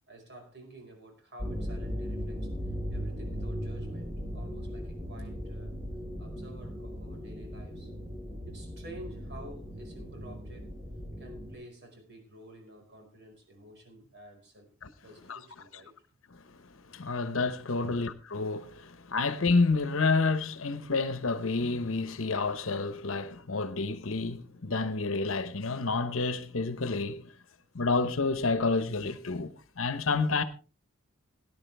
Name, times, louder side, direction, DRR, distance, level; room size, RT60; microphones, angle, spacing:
voice 1, 0.1-2.5 2.9-5.7 6.2-7.9 8.4-10.8 11.2-14.7 15.0-15.9 17.8-18.0, right 1 dB, 55° right, 5.1 m, -50 dB
sound 1, 1.4-11.5, equal, 25° right, 4.9 m, -38 dB
voice 2, 16.9-27.3 27.7-30.4, left 3 dB, 70° left, 1.0 m, -29 dB
17.5 x 11.0 x 3.4 m
head